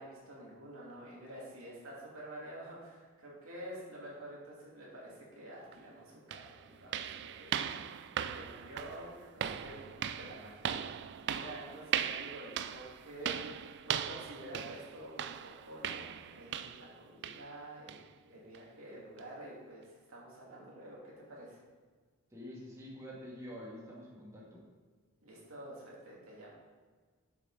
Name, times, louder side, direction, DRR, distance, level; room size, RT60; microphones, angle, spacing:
voice 1, 0.0-7.6 7.9-9.9 10.2-10.9 11.2-21.6 25.2-26.5, right 1 dB, 75° right, -5 dB, 2.7 m, -49 dB
sound 1, 5.7-5.8 6.3-16.9 17.2-17.5 17.9-18.1 18.5-18.6 19.2-19.3, right 9 dB, 55° right, 0.4 m, -39 dB
voice 2, 22.3-24.6, equal, 15° right, -6 dB, 1.9 m, -47 dB
7.4 x 6.7 x 4.9 m, 1.5 s
head